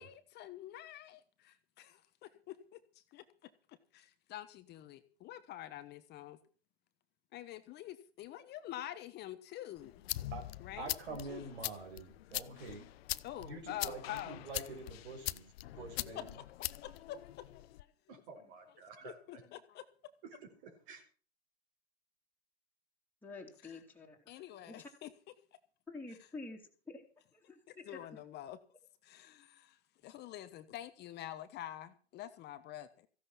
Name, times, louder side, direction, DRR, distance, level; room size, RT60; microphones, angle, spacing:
voice 1, 0.0-2.8 3.1-3.2 3.7-6.4 7.3-10.0 10.6-11.0 11.3-11.5 13.2-14.4 16.1-16.4 16.8-18.2 19.0-19.8 23.6-23.8 24.3-25.3 26.1-26.3 27.8-28.6 29.0-29.8 30.0-33.1, left 12 dB, 30° left, 1.2 m, -47 dB
sound 1, 9.8-17.8, left 15 dB, 65° left, 0.8 m, -43 dB
voice 2, 10.8-12.9 13.4-16.4, right 3 dB, 75° right, 5.5 m, -46 dB
voice 3, 18.1-19.4 20.2-21.0, right 5 dB, 50° right, 4.9 m, -53 dB
voice 4, 23.2-24.2 24.7-24.8 25.9-27.0 27.5-27.8, left 3 dB, 5° left, 2.9 m, -48 dB
15.5 x 11.0 x 5.9 m
hypercardioid pair, 120°, 33 cm